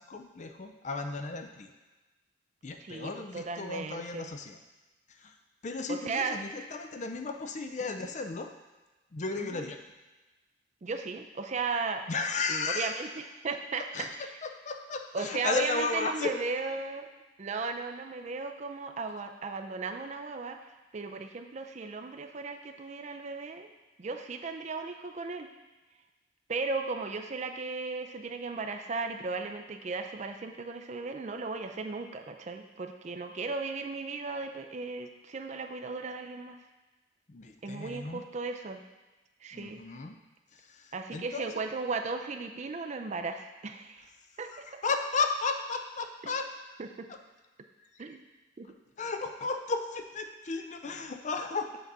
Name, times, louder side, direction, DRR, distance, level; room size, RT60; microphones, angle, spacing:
voice 1, 0.0-1.7 2.6-4.6 5.2-5.3 5.6-8.5 9.1-9.8 12.1-13.0 13.9-14.1 14.4-16.3 37.3-38.2 39.5-40.1 40.5-41.6 44.4-46.5 47.1-47.2 49.0-51.8, left 4 dB, 40° left, 6 dB, 0.5 m, -34 dB
voice 2, 2.8-4.3 5.9-6.4 9.4-9.6 10.8-12.0 12.5-13.8 15.1-17.1 17.4-20.6 20.9-23.7 24.0-25.5 26.5-36.6 37.6-38.8 39.4-39.8 40.9-44.1 44.4-44.5 46.8-47.1 48.0-48.2 48.6-48.7, right 4 dB, 35° right, 5 dB, 0.4 m, -36 dB
8.0 x 4.0 x 4.7 m, 1.2 s
head